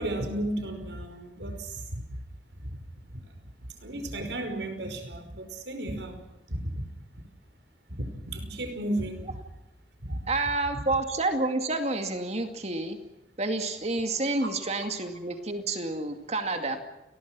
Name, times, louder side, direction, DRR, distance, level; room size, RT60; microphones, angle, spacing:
voice 1, 0.0-2.0 2.6-2.8 3.8-6.2 6.5-6.8 7.9-8.0 8.3-9.4 10.0-10.2 14.4-14.5, right 1 dB, 85° right, 7 dB, 5.4 m, -33 dB
voice 2, 10.3-13.0 13.4-16.8, right 2 dB, 40° right, 6 dB, 2.3 m, -29 dB
29.5 x 21.0 x 6.2 m, 0.95 s
head